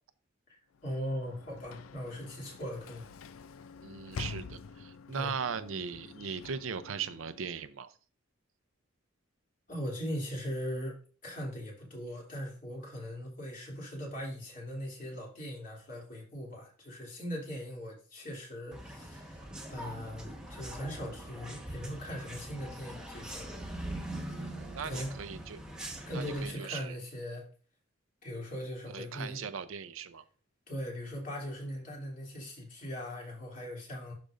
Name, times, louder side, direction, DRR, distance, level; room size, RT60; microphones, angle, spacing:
Sliding door / Slam, 0.7-7.7, left 5 dB, 90° left, 0.4 m, -47 dB
voice 1, 0.8-3.1 5.1-5.3 9.7-23.5 24.8-25.1 26.1-27.4 28.2-29.5 30.7-34.1, equal, 40° left, 2.8 m, -40 dB
voice 2, 3.8-7.9 24.3-25.6 26.1-27.0 28.9-30.2, right 6 dB, 80° right, 0.6 m, -39 dB
sound 1, 18.7-26.5, right 1 dB, 5° right, 1.2 m, -42 dB
11.5 x 5.2 x 2.5 m
head